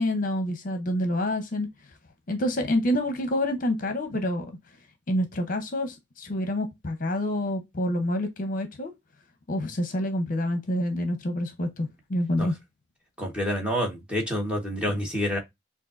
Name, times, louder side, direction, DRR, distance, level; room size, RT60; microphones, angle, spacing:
voice 1, 0.0-1.7 2.3-4.5 5.1-8.9 9.5-12.5, left 1 dB, 45° left, 0.8 m, -27 dB
voice 2, 13.2-15.4, equal, 5° right, 1.3 m, -28 dB
6.6 x 2.6 x 2.6 m
head